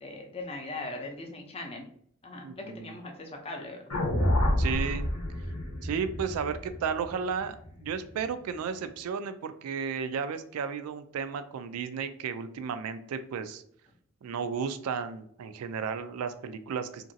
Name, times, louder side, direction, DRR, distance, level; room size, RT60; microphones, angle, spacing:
voice 1, 0.0-1.9 2.2-3.9, left 2 dB, 25° left, 2 dB, 0.5 m, -40 dB
voice 2, 2.4-3.0 4.6-5.1 5.8-7.6 7.8-13.6 14.2-17.1, right 6 dB, 85° right, 10 dB, 0.3 m, -33 dB
sound 1, 3.9-8.2, left 1 dB, 80° left, 0.7 m, -29 dB
2.9 x 2.5 x 2.6 m, 0.65 s
head